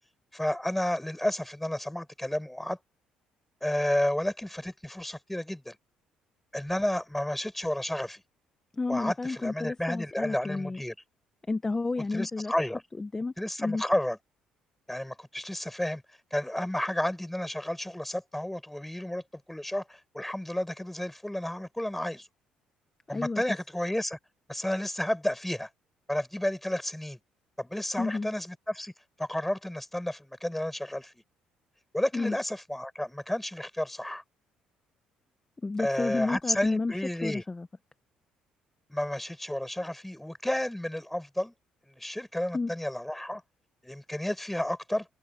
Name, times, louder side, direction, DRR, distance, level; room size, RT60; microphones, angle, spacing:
voice 1, 0.3-2.8 3.6-5.8 6.5-8.2 8.9-10.9 12.1-12.8 13.4-14.2 14.9-16.0 16.3-22.3 23.1-24.2 24.5-25.7 26.1-27.2 27.6-28.9 29.2-31.1 31.9-34.2 35.8-37.4 38.9-41.5 41.9-43.4 43.8-45.1, left 1 dB, 5° left, 5.6 m, -31 dB
voice 2, 8.7-10.8 11.5-12.5 13.0-13.3 13.6-13.8 23.1-23.4 28.0-28.3 32.1-32.4 35.6-37.7 42.5-42.7, left 3 dB, 20° left, 1.0 m, -31 dB
supercardioid pair, 75°, 3 cm